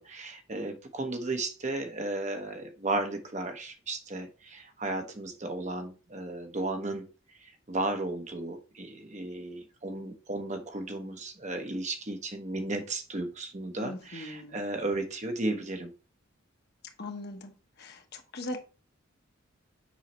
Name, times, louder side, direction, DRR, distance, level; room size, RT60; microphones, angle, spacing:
voice 1, 0.0-7.0 7.4-15.9, right 2 dB, 35° right, 5 dB, 1.1 m, -34 dB
voice 2, 13.8-14.6 17.0-17.5 17.8-18.6, left 1 dB, 55° left, 5 dB, 1.1 m, -40 dB
7.2 x 5.6 x 3.1 m, 0.34 s
head